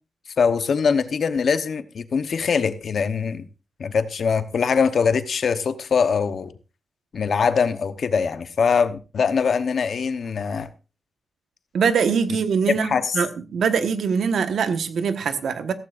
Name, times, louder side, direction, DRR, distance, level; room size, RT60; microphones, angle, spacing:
voice 1, 0.4-3.5 3.8-6.5 7.1-10.7 12.8-13.2, left 6 dB, 55° left, 11 dB, 0.9 m, -22 dB
voice 2, 11.7-15.7, right 6 dB, 80° right, 9 dB, 1.3 m, -23 dB
15.5 x 14.5 x 2.5 m, 0.32 s
wide cardioid pair, 170°, 0 cm